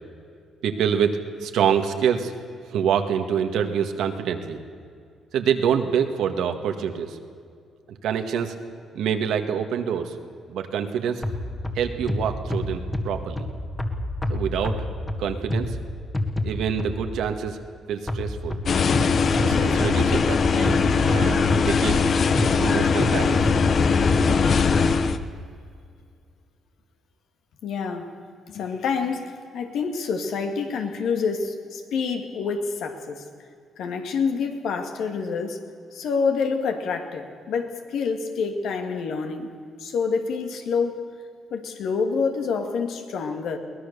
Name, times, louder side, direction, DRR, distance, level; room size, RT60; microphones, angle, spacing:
voice 1, 0.6-2.4 2.7-4.6 5.3-7.2 7.9-8.5 9.0-10.2 10.5-11.2 11.8-13.4 14.3-14.8 15.2-15.8 16.4-17.6 17.9-18.6 19.4-22.0 22.5-23.5, right 8 dB, 80° right, 6 dB, 1.8 m, -26 dB
sound 1, 11.2-17.3 18.1-24.9, left 1 dB, 15° left, 1.9 m, -29 dB
sound 2, 18.7-25.2, left 5 dB, 50° left, 1.0 m, -20 dB
voice 2, 27.6-28.1 28.5-33.2 33.8-35.6 35.9-39.5 39.8-41.0 41.5-43.6, left 5 dB, 75° left, 5 dB, 2.3 m, -27 dB
22.5 x 18.5 x 6.9 m, 2.3 s
cardioid pair, 90°, 0 cm